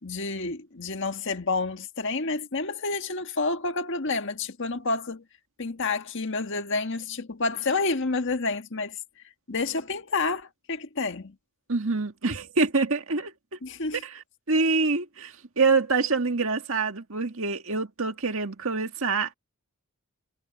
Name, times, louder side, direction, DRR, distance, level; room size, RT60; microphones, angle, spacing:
voice 1, 0.0-5.2 5.6-9.0 9.5-11.3 13.6-14.0, left 3 dB, 55° left, 1.6 m, -29 dB
voice 2, 11.7-13.3 14.0-19.3, right 4 dB, 65° right, 1.9 m, -26 dB
head